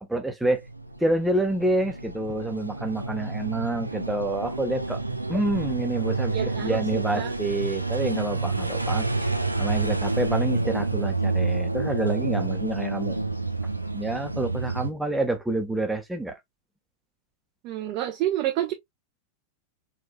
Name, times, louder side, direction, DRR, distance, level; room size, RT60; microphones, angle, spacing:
voice 1, 0.0-0.6 1.0-5.0 5.3-9.1 9.6-13.2 13.9-16.4, right 2 dB, 5° right, 1.3 m, -28 dB
sound 1, 0.6-14.9, right 3 dB, 85° right, 0.6 m, -28 dB
voice 2, 6.3-6.8 7.1-7.3 17.6-18.7, right 13 dB, 40° right, 0.9 m, -28 dB
4.9 x 3.9 x 2.3 m
figure-of-eight pair, 90°, 0 cm